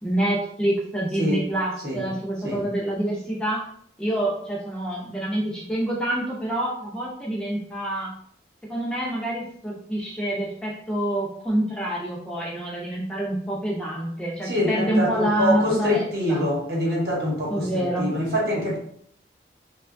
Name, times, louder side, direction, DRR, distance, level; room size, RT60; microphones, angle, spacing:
voice 1, 0.0-3.6 4.0-8.1 8.7-16.4 17.5-18.1, right 1 dB, 5° left, -4 dB, 0.4 m, -27 dB
voice 2, 14.4-18.8, left 1 dB, 65° right, -3 dB, 0.9 m, -25 dB
2.8 x 2.2 x 2.4 m, 0.64 s
head